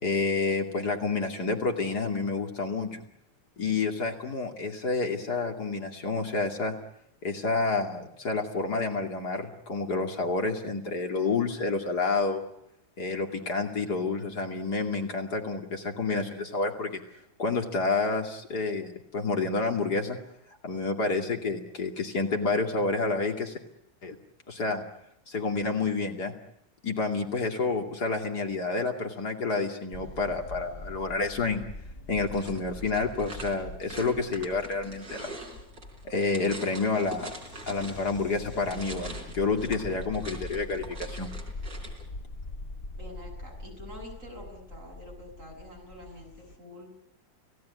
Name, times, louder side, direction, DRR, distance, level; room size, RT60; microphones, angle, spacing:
voice 1, 0.0-3.0 3.6-6.8 7.2-12.4 13.0-17.0 17.4-20.2 20.6-23.6 24.0-24.2 24.5-24.8 25.3-26.3 26.8-31.6 32.1-35.3 36.0-37.3 37.7-41.3, left 4 dB, 60° left, 4 dB, 3.1 m, -29 dB
sound 1, 29.9-46.5, left 2 dB, 35° left, 1.9 m, -43 dB
sound 2, 32.3-38.2 38.5-42.0, right 2 dB, 75° right, 4.6 m, -44 dB
voice 2, 42.9-46.9, left 1 dB, 45° right, 1 dB, 8.2 m, -46 dB
29.5 x 17.5 x 9.6 m, 0.78 s
omnidirectional pair, 1.9 m